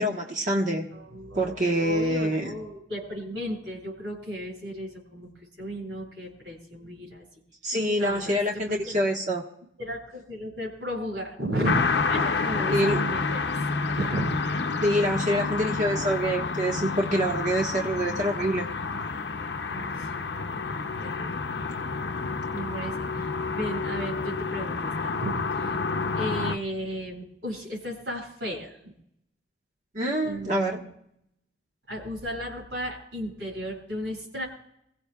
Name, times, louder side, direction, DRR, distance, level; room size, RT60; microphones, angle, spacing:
voice 1, 0.0-0.8 1.3-2.5 7.6-9.4 12.7-13.0 14.8-18.7 29.9-30.8, equal, 45° right, 0 dB, 1.3 m, -25 dB
voice 2, 0.9-7.2 8.0-9.0 9.8-13.6 13.9-14.4 19.7-21.4 22.5-25.8 26.1-28.9 30.2-30.9 31.9-34.5, equal, 85° right, -3 dB, 7.5 m, -35 dB
sound 1, 11.6-26.6, left 4 dB, 65° left, 0.7 m, -29 dB
27.5 x 16.0 x 2.4 m, 0.74 s
head